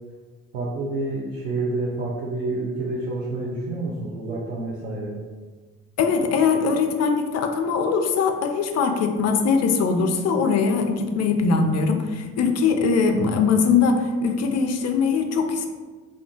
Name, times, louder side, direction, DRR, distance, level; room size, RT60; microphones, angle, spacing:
voice 1, 0.5-5.2, right 2 dB, 85° right, -6 dB, 0.5 m, -28 dB
voice 2, 6.0-15.7, left 5 dB, 45° left, 4 dB, 0.5 m, -21 dB
2.5 x 2.2 x 3.6 m, 1.4 s
figure-of-eight pair, 45°, 37 cm